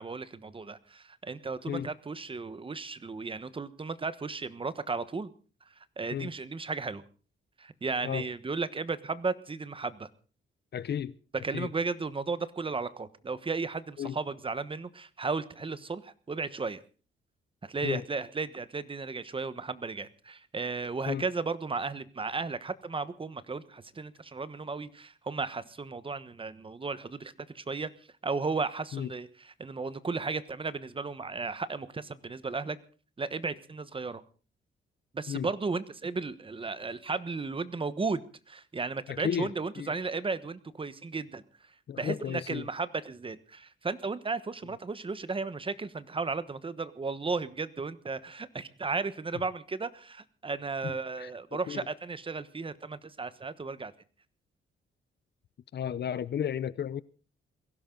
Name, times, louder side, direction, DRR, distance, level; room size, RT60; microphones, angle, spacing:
voice 1, 0.0-5.3 6.0-7.0 7.6-10.1 11.4-16.8 17.6-27.9 28.2-32.8 33.2-34.2 35.1-41.4 42.0-53.9, right 4 dB, 25° right, 1.2 m, -35 dB
voice 2, 10.7-11.1 11.5-11.7 14.0-14.2 17.8-18.1 21.1-21.2 28.9-29.1 35.3-35.5 39.1-39.5 39.8-40.0 41.9-42.7 50.8-51.8 55.7-57.0, left 9 dB, 60° left, 0.7 m, -33 dB
22.0 x 16.5 x 3.9 m
cardioid pair, 125°, 20 cm